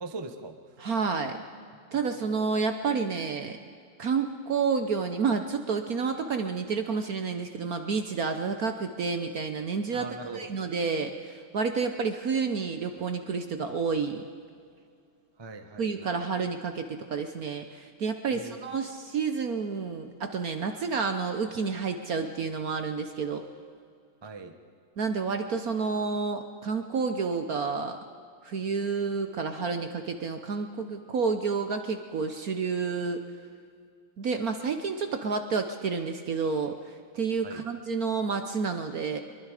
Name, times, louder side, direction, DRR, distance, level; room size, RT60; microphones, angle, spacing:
voice 1, 0.0-0.5 1.9-2.4 9.9-10.5 15.4-16.2 18.3-18.6 24.2-24.5 37.4-37.6, right 3 dB, 25° right, 6 dB, 0.5 m, -41 dB
voice 2, 0.8-1.4 1.9-3.6 4.0-14.2 15.8-23.4 25.0-28.0 28.4-33.2 34.2-39.2, right 5 dB, 55° right, 6 dB, 1.0 m, -30 dB
23.5 x 22.5 x 5.0 m, 2.3 s
omnidirectional pair, 2.4 m